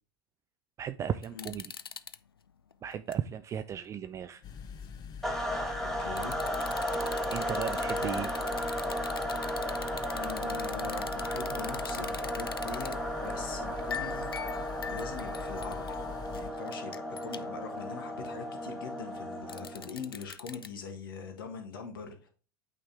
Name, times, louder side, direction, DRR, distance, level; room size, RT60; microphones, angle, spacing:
voice 1, 0.8-1.8 2.8-4.4 7.3-8.3, right 9 dB, 25° right, 0.3 m, -35 dB
sound 1, 1.2-2.2 2.7-3.1 3.6-3.7 6.2-13.0 13.2-13.4 13.8-17.6 19.5-20.7, left 7 dB, 90° left, 0.4 m, -42 dB
sound 2, 4.4-16.5, left 6 dB, 35° left, 0.7 m, -44 dB
sound 3, 5.2-20.0, equal, 5° left, 1.4 m, -35 dB
voice 2, 5.8-6.4 8.0-8.3 10.1-22.3, left 5 dB, 70° left, 1.4 m, -43 dB
8.6 x 3.6 x 3.4 m
figure-of-eight pair, 85°, 12 cm